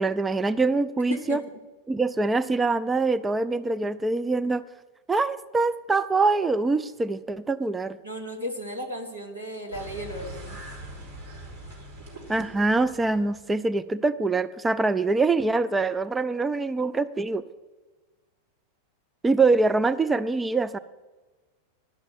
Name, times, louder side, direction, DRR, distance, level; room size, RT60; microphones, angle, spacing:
voice 1, 0.0-1.4 1.9-4.6 5.1-8.0 12.3-17.4 19.2-20.8, right 3 dB, 10° right, 12 dB, 0.3 m, -24 dB
voice 2, 8.0-10.6, equal, 85° right, 1 dB, 1.8 m, -35 dB
sound 1, 9.7-13.6, right 1 dB, 60° right, 3.4 m, -42 dB
11.5 x 6.1 x 9.2 m, 1.3 s
figure-of-eight pair, 90°, 0 cm